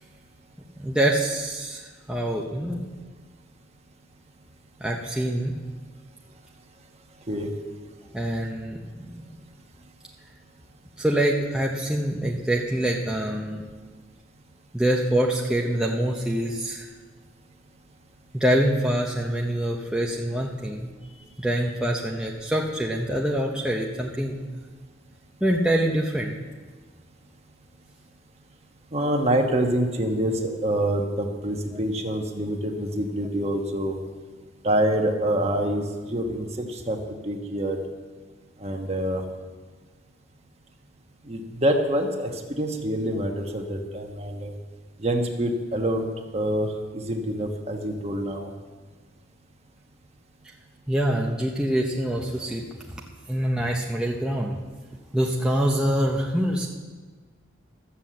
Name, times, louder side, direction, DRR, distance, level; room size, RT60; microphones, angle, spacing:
voice 1, 0.8-2.8 4.8-5.5 8.1-9.4 11.0-13.6 14.7-16.9 18.3-24.4 25.4-26.3 50.9-52.7 53.3-54.6 55.1-56.7, right 1 dB, 5° right, -2 dB, 0.7 m, -25 dB
voice 2, 28.9-34.0 34.6-37.0 37.2-37.8 38.6-39.2 41.2-44.5 45.0-46.1 46.3-48.5, right 1 dB, 35° right, 3 dB, 1.2 m, -26 dB
13.0 x 7.4 x 7.5 m, 1.4 s
head